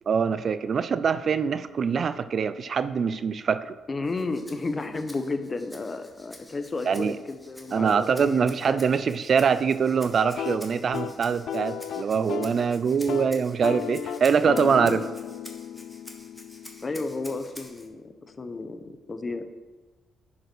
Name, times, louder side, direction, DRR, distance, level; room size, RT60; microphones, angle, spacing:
voice 1, 0.1-3.7 6.9-7.2 7.7-15.0, right 6 dB, 50° right, 13 dB, 0.4 m, -24 dB
voice 2, 3.9-8.8 14.6-15.1 16.8-19.5, left 3 dB, 30° left, 9 dB, 0.8 m, -33 dB
Rattle (instrument), 4.0-17.9, left 1 dB, 5° left, 1.5 m, -48 dB
sound 1, 10.2-12.6 12.9-13.3 13.6-17.5, left 9 dB, 70° left, 0.4 m, -35 dB
9.6 x 5.3 x 6.1 m, 1.3 s
cardioid pair, 90°, 0 cm